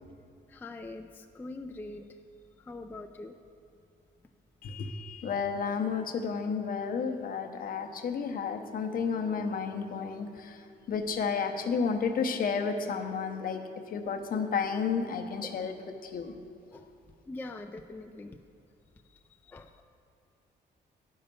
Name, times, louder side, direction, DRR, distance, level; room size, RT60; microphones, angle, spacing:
voice 1, 0.5-2.0 2.7-3.3 15.4-15.6 16.7-16.8 17.3-18.4 19.5-19.8, left 2 dB, 10° left, 5 dB, 0.3 m, -43 dB
voice 2, 4.6-10.6 10.9-13.6 13.9-15.7 16.0-16.3, left 5 dB, 50° left, 5 dB, 0.8 m, -31 dB
9.7 x 5.5 x 6.8 m, 2.5 s
cardioid pair, 140°, 19 cm